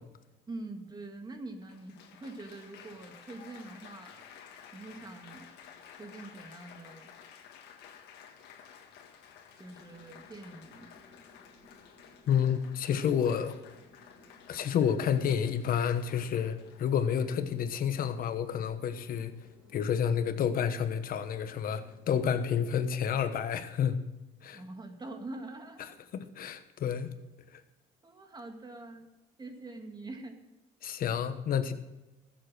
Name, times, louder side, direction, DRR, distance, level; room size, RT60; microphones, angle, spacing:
voice 1, 0.5-4.2 4.7-5.5 5.9-7.1 9.6-11.0 24.5-26.0 28.0-29.1 29.4-30.4, right 2 dB, 25° right, 5 dB, 1.9 m, -44 dB
Applause, 0.9-1.0 1.6-17.5 18.3-18.6, left 8 dB, 85° left, 1.7 m, -54 dB
sound 1, 9.7-22.3, left 2 dB, 10° right, 4.0 m, -59 dB
voice 2, 12.3-13.6 14.5-19.3 19.7-24.1 24.4-24.6 25.8-27.1 27.5-27.6 30.8-31.7, left 8 dB, 60° left, 10 dB, 1.2 m, -30 dB
14.5 x 7.8 x 6.2 m, 1.0 s
cardioid pair, 110°, 17 cm